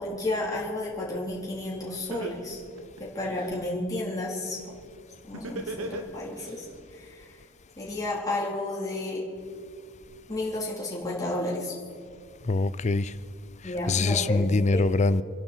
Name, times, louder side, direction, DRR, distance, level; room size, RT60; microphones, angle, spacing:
voice 1, 0.0-2.6 3.0-4.6 5.2-6.7 6.9-7.3 7.8-9.2 10.3-11.7 13.6-14.8, left 2 dB, 15° left, 3.9 m, -32 dB
Laughter, 1.6-1.7 2.1-3.6 5.3-6.5, right 2 dB, 90° right, 1.7 m, -35 dB
voice 2, 12.5-13.1 13.6-15.2, left 3 dB, 35° left, 0.5 m, -24 dB
28.0 x 11.5 x 4.5 m
head